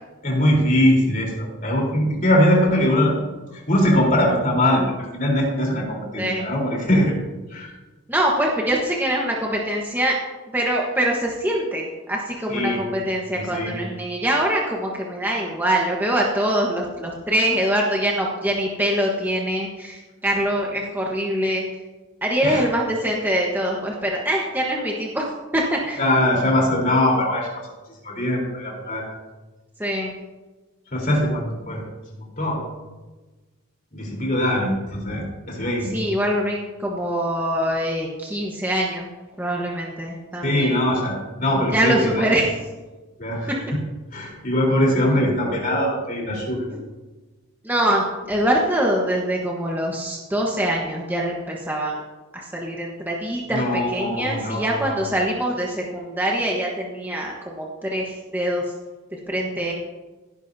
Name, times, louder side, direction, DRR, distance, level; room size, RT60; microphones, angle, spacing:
voice 1, 0.2-3.1 3.7-4.8 5.1-7.2 7.5-7.7 12.5-12.8 13.3-13.7 22.4-22.6 26.0-27.5 28.0-29.1 30.9-31.8 32.4-32.6 33.9-36.0 40.4-42.3 43.2-43.8 44.1-46.6 53.5-55.0, left 1 dB, 40° left, -1 dB, 3.9 m, -21 dB
voice 2, 8.1-10.2 10.5-21.6 22.2-25.2 25.5-26.0 29.8-30.1 35.9-39.1 39.4-40.7 41.7-42.5 46.7-46.8 47.6-52.0 52.3-58.6 59.3-59.7, right 1 dB, 10° right, -2 dB, 1.2 m, -24 dB
17.0 x 10.5 x 2.8 m, 1.2 s
head